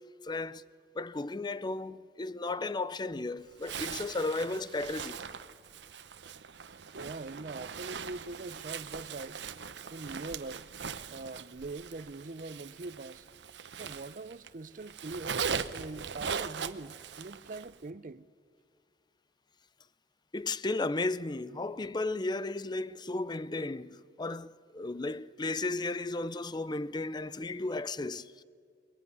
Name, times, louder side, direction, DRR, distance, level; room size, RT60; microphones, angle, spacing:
voice 1, 0.2-0.6 0.9-5.2 20.3-28.4, left 2 dB, 25° left, 0.5 m, -34 dB
Zipper (clothing), 3.6-14.5 14.8-17.8, right 6 dB, 80° right, 0.9 m, -40 dB
voice 2, 7.0-9.4 9.9-10.7 11.1-13.3 13.8-15.4 15.7-18.2, right 3 dB, 50° right, 0.7 m, -42 dB
22.0 x 21.5 x 9.5 m
head